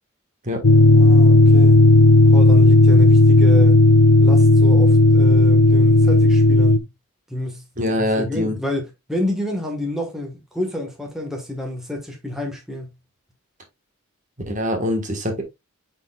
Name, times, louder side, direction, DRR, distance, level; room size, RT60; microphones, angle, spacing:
sound 1, 0.6-6.8, left 2 dB, 85° left, 0.7 m, -12 dB
voice 1, 0.9-1.8 2.3-3.8 4.2-6.8 7.3-7.6 7.9-12.9, left 1 dB, ahead, 1.5 m, -29 dB
voice 2, 7.8-8.5 14.5-15.4, left 1 dB, 35° right, 1.5 m, -23 dB
9.7 x 4.3 x 2.4 m
head